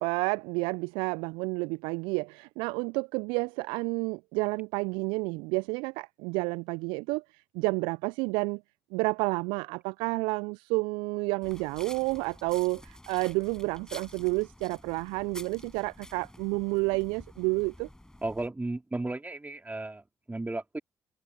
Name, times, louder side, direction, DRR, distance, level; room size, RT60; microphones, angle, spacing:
voice 1, 0.0-8.6 8.9-17.9, right 28 dB, 70° right, 0.7 m, -30 dB
sound 1, 11.4-18.5, left 1 dB, 5° left, 6.3 m, -49 dB
voice 2, 18.2-20.8, right 2 dB, 15° right, 4.5 m, -34 dB
figure-of-eight pair, 40°, 9 cm